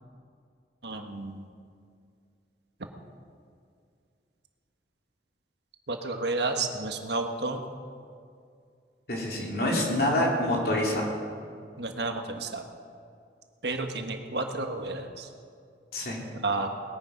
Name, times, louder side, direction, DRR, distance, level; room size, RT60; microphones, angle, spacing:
voice 1, 0.8-1.4 5.9-7.6 11.8-12.6 13.6-15.3 16.4-16.7, right 3 dB, 70° right, 5 dB, 1.3 m, -31 dB
voice 2, 9.1-11.0 15.9-16.2, left 1 dB, 55° left, -3 dB, 3.2 m, -26 dB
20.0 x 9.7 x 5.4 m, 2.3 s
head